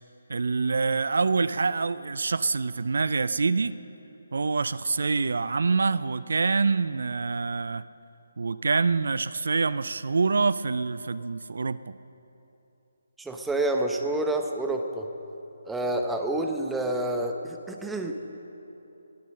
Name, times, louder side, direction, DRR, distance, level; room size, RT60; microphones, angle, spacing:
voice 1, 0.3-3.7 4.3-7.8 8.4-12.0, right 4 dB, 70° right, 16 dB, 0.4 m, -26 dB
voice 2, 13.2-15.1 15.7-18.1, right 1 dB, 5° right, 3 dB, 0.9 m, -28 dB
19.5 x 9.5 x 6.5 m, 3.0 s
figure-of-eight pair, 150°, 0 cm